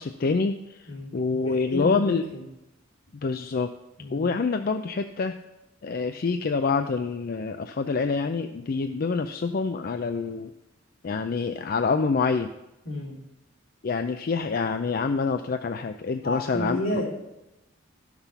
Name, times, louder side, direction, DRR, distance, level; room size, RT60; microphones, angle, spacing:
voice 1, 0.0-0.9 1.1-2.2 3.2-3.7 4.1-5.4 5.8-10.5 11.0-12.5 13.8-16.8, left 4 dB, 50° left, 7 dB, 0.4 m, -26 dB
voice 2, 1.4-2.4 4.0-4.3 12.8-13.2 16.2-17.1, left 1 dB, 75° left, -3 dB, 3.4 m, -31 dB
13.5 x 6.0 x 5.7 m, 0.94 s
head